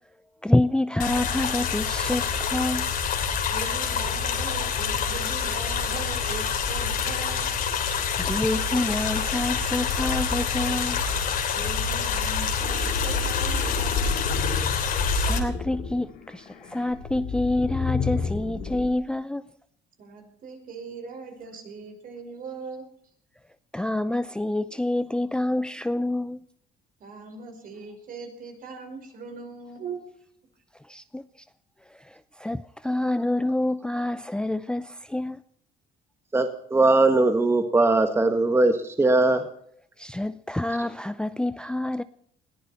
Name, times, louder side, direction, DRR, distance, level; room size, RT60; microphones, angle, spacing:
voice 1, 0.4-2.9 8.2-11.0 14.9-19.4 23.7-26.4 30.9-31.2 31.9-35.4 40.0-42.0, left 1 dB, 5° left, 0.6 m, -27 dB
sound 1, 1.0-15.4, left 6 dB, 60° left, 3.3 m, -26 dB
voice 2, 3.5-7.5 11.5-14.4 20.0-22.8 27.0-30.0, right 4 dB, 55° right, 5.3 m, -39 dB
sound 2, 12.6-18.9, left 5 dB, 75° left, 3.8 m, -32 dB
voice 3, 36.3-39.5, right 2 dB, 15° right, 1.6 m, -20 dB
21.0 x 15.0 x 4.3 m
cardioid pair, 110°, 17 cm